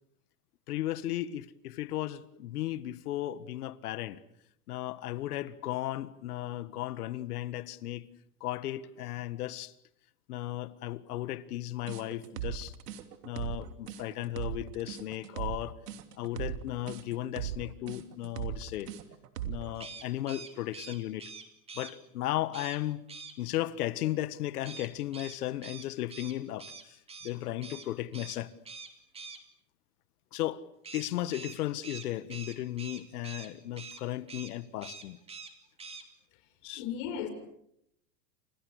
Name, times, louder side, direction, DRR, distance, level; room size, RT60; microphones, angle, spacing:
voice 1, 0.7-4.2 4.7-8.1 8.4-9.7 10.3-12.7 13.2-15.8 16.2-18.9 19.4-21.3 21.7-23.1 23.4-28.5 30.3-30.6 30.9-35.2 36.6-36.8, left 14 dB, 70° left, 1.8 m, -35 dB
sound 1, 11.9-19.7, right 11 dB, 80° right, 3.1 m, -38 dB
sound 2, 19.7-21.9 22.5-22.8 23.1-23.3 24.6-27.3 27.6-27.9 28.1-28.4 28.7-29.4 30.8-33.5 33.8-34.0 34.3-34.5 34.8-35.5 35.8-36.0, right 5 dB, 15° right, 2.7 m, -45 dB
voice 2, 36.7-37.3, left 8 dB, 45° left, 6.9 m, -36 dB
30.0 x 27.0 x 6.6 m
supercardioid pair, 150°, 46 cm